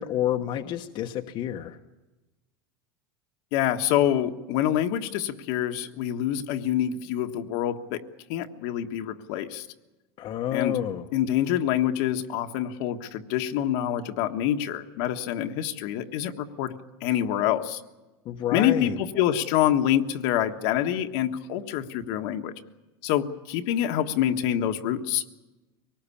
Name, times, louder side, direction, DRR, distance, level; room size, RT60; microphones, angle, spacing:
voice 1, 0.0-1.8 10.2-11.0 18.3-19.0, left 11 dB, 40° left, 4 dB, 1.2 m, -29 dB
voice 2, 3.5-8.0 8.3-9.7 10.5-10.8 11.1-16.7 17.0-17.8 18.5-22.5 23.0-25.2, left 11 dB, 60° left, 6 dB, 1.5 m, -26 dB
24.0 x 19.0 x 8.6 m, 1.1 s
supercardioid pair, 150°, 13 cm